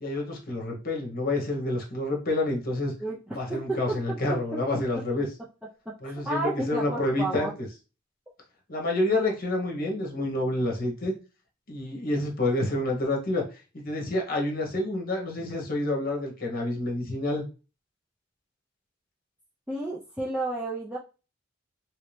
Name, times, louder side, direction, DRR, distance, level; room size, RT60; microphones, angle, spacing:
voice 1, 0.0-2.9 3.4-5.3 6.0-7.7 8.7-11.1 11.7-13.4 13.7-17.5, left 2 dB, 50° left, 0 dB, 1.1 m, -28 dB
voice 2, 3.5-4.0 4.3-4.4 5.9-7.5 19.7-21.0, right 2 dB, 5° right, -6 dB, 0.5 m, -31 dB
3.0 x 2.8 x 3.2 m, 0.32 s
head